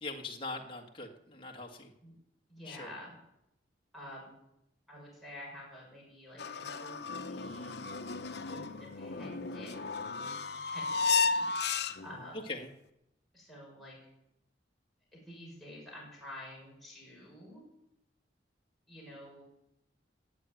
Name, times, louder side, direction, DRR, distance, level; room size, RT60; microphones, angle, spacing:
voice 1, 0.0-1.9 2.6-2.9 12.5-12.7, left 3 dB, 30° left, 1 dB, 1.8 m, -41 dB
voice 2, 2.5-3.2 3.9-4.3 4.9-7.8 8.5-10.0 10.6-12.5 13.3-14.0 15.1-17.6 18.9-19.4, left 1 dB, ahead, -6 dB, 6.2 m, -49 dB
sound 1, 6.4-12.3, left 4 dB, 60° left, 0.9 m, -34 dB
18.5 x 7.8 x 9.3 m, 0.84 s
head